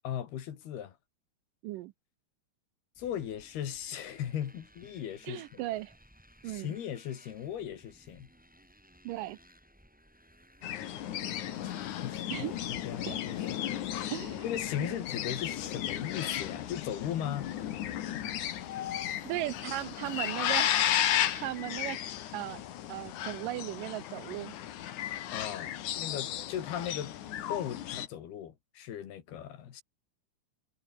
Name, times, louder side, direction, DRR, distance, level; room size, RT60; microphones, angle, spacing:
voice 1, 0.0-1.0 3.0-5.6 6.4-8.3 11.6-14.1 14.4-17.5 25.3-27.1 27.5-29.8, left 10 dB, 75° left, 4.3 m, -38 dB
Motorcycle, 3.0-22.7, equal, ahead, 4.6 m, -61 dB
voice 2, 5.2-5.9 6.4-6.7 9.0-9.4 12.3-12.6 13.1-13.2 14.1-14.4 14.8-14.9 19.2-20.7 21.0-22.0 22.3-22.6 22.9-24.6, right 16 dB, 80° right, 2.0 m, -37 dB
sound 1, 10.6-28.1, left 11 dB, 60° left, 2.5 m, -34 dB
omnidirectional pair, 4.5 m